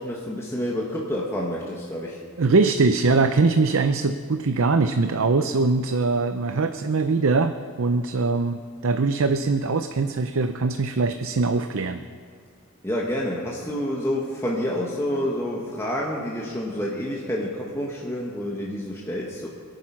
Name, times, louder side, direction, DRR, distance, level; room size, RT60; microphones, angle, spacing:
voice 1, 0.0-2.2 12.8-19.5, equal, 10° left, -4 dB, 1.5 m, -28 dB
voice 2, 2.4-12.1, right 3 dB, 70° right, 9 dB, 0.6 m, -22 dB
26.0 x 9.2 x 5.9 m, 2.1 s
head